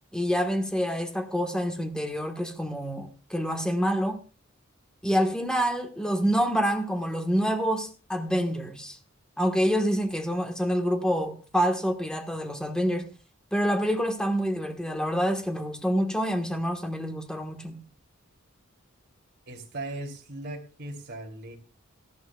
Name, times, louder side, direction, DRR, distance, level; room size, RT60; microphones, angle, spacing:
voice 1, 0.1-4.2 5.0-9.0 9.4-13.1 13.5-17.8, equal, 5° left, 1.4 m, -27 dB
voice 2, 19.5-21.6, right 2 dB, 55° right, 3.0 m, -38 dB
18.0 x 13.5 x 2.3 m
head